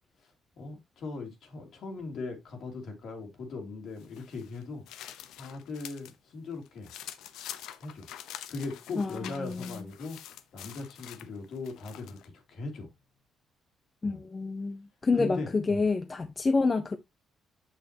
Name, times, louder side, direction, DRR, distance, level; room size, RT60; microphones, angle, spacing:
voice 1, 0.6-4.8 5.4-6.9 7.8-8.1 8.5-10.2 10.5-12.9 14.0-14.2 15.1-15.8, left 3 dB, 70° left, 2.9 m, -39 dB
sound 1, 4.0-6.2 6.5-12.3, left 11 dB, 90° left, 0.8 m, -46 dB
voice 2, 9.0-9.8 14.0-17.0, left 4 dB, 30° left, 0.8 m, -28 dB
7.6 x 6.4 x 2.9 m
cardioid pair, 90°, 0 cm